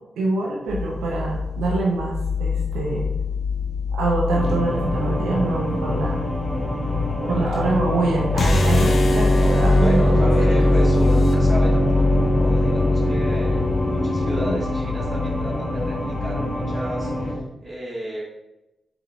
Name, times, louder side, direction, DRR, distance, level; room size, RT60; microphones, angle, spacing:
voice 1, 0.2-3.1 3.9-6.2 7.3-10.5, right 3 dB, 90° right, -3 dB, 0.7 m, -25 dB
sound 1, 0.7-17.4, left 6 dB, 70° right, 1.1 m, -29 dB
sound 2, 4.3-17.3, equal, 30° left, 1.6 m, -28 dB
voice 2, 7.2-7.7 9.4-18.2, right 1 dB, 45° right, -8 dB, 1.5 m, -32 dB
sound 3, 8.3-14.6, left 1 dB, 65° left, 0.7 m, -19 dB
4.0 x 3.7 x 3.5 m, 0.94 s
supercardioid pair, 50°, 0 cm